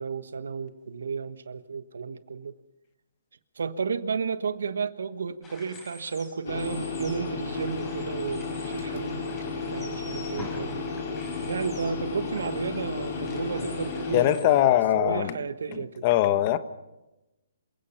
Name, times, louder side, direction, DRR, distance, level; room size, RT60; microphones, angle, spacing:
voice 1, 0.0-2.5 3.6-9.2 9.7-10.9 11.5-16.0, right 5 dB, 70° right, 1.2 m, -33 dB
sound 1, 5.4-14.4, left 2 dB, 15° left, 5.8 m, -47 dB
sound 2, 6.5-14.2, left 4 dB, 55° left, 5.0 m, -33 dB
voice 2, 14.1-15.3 15.7-16.6, left 13 dB, 35° left, 1.3 m, -22 dB
27.5 x 16.5 x 5.8 m
hypercardioid pair, 140°, 0 cm